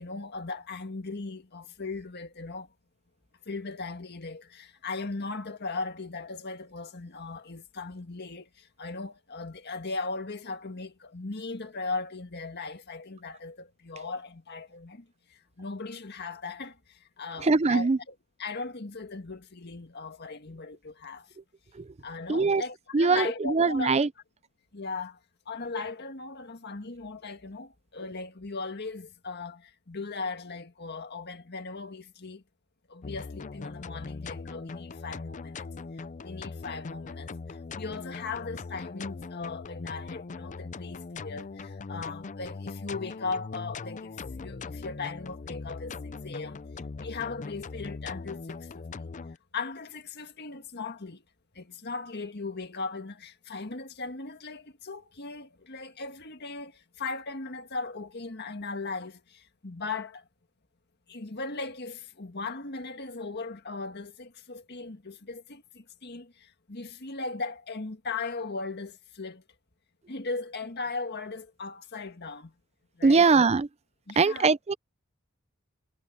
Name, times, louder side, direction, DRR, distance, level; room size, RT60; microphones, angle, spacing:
voice 1, 0.0-2.7 3.5-17.9 18.4-21.3 22.0-24.0 24.7-25.2 25.5-32.4 32.9-35.7 36.2-46.6 47.0-49.1 49.5-51.2 51.6-60.2 61.1-69.4 70.1-72.5 73.0-73.3 74.1-74.5, left 3 dB, 55° left, 1.8 m, -38 dB
voice 2, 17.4-18.0 21.7-21.9 22.3-22.6 22.9-24.1 73.0-73.7 74.2-74.7, right 4 dB, 30° right, 0.5 m, -22 dB
sound 1, 33.0-49.4, left 4 dB, 35° left, 0.5 m, -40 dB
head